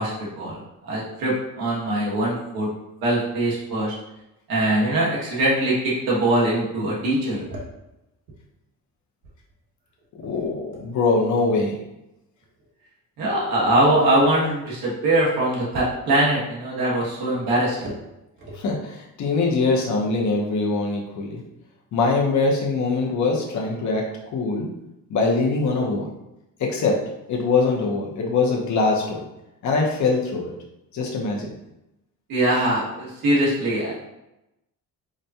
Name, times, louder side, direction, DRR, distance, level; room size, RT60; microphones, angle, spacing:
voice 1, 0.0-2.7 3.0-3.9 4.5-7.4 13.2-17.9 32.3-33.9, right 1 dB, 85° right, -5 dB, 1.4 m, -22 dB
voice 2, 10.2-11.8 18.5-21.4 21.9-24.7 25.1-26.1 26.6-27.0 27.3-29.3 29.6-30.5 30.9-31.6, left 3 dB, 55° left, 0 dB, 0.8 m, -23 dB
4.9 x 2.2 x 2.8 m, 0.91 s
cardioid pair, 155°, 35 cm